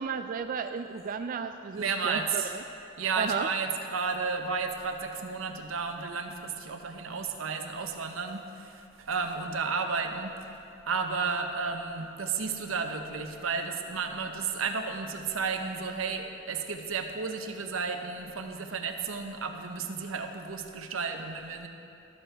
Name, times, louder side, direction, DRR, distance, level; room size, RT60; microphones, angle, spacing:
voice 1, 0.0-2.6 3.2-3.5, right 6 dB, 45° right, 7 dB, 0.3 m, -33 dB
voice 2, 1.7-2.5 3.0-21.7, right 5 dB, 85° right, 5 dB, 0.9 m, -33 dB
13.0 x 13.0 x 3.4 m, 2.7 s
head